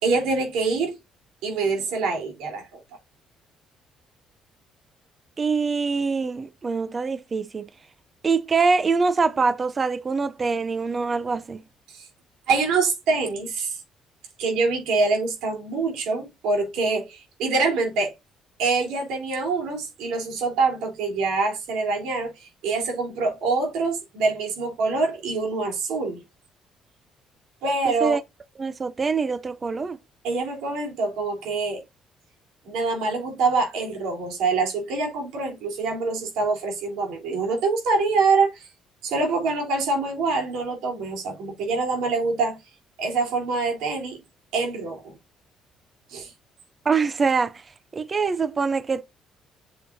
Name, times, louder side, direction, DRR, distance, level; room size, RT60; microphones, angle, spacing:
voice 1, 0.0-1.0 1.4-2.7 11.9-12.1 12.5-13.8 14.4-18.1 18.6-26.2 27.6-28.2 30.2-31.8 32.7-38.7 39.0-42.6 43.0-44.2 44.5-45.1 46.1-46.3, right 4 dB, 90° right, 3.5 m, -25 dB
voice 2, 5.4-7.7 8.2-11.6 27.9-28.2 28.6-30.0 46.9-47.6 47.9-49.0, right 4 dB, 25° right, 0.4 m, -24 dB
8.3 x 7.0 x 2.7 m
cardioid pair, 140°, 0 cm